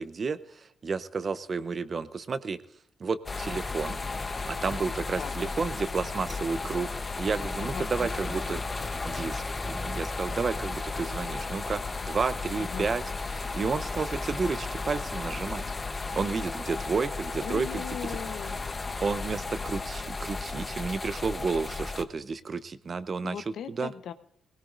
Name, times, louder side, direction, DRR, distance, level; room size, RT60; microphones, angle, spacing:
voice 1, 0.0-2.6 3.0-4.0 4.5-6.9 7.2-8.6 9.0-13.0 13.3-15.6 16.1-17.8 18.4-18.6 19.0-23.9, right 4 dB, 45° right, 13 dB, 0.8 m, -31 dB
sound 1, 3.3-22.0, left 3 dB, 30° left, 1.0 m, -34 dB
voice 2, 5.2-5.5 7.6-8.1 12.6-12.9 17.4-18.8 23.2-24.1, left 8 dB, 80° left, 10 dB, 0.9 m, -39 dB
19.5 x 17.5 x 2.6 m, 0.71 s
cardioid pair, 75°, 0 cm